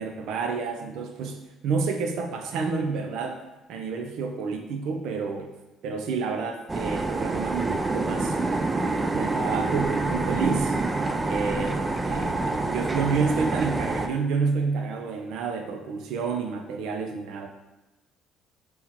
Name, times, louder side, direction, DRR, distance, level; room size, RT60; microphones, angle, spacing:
voice 1, 0.0-3.4 3.7-5.5 5.8-8.4 9.1-10.8 11.3-17.5, right 5 dB, 75° right, 4 dB, 0.5 m, -29 dB
sound 1, 6.7-14.1, right 3 dB, 25° right, 0.4 m, -27 dB
4.5 x 3.5 x 3.0 m, 1.1 s
supercardioid pair, 75°, 0 cm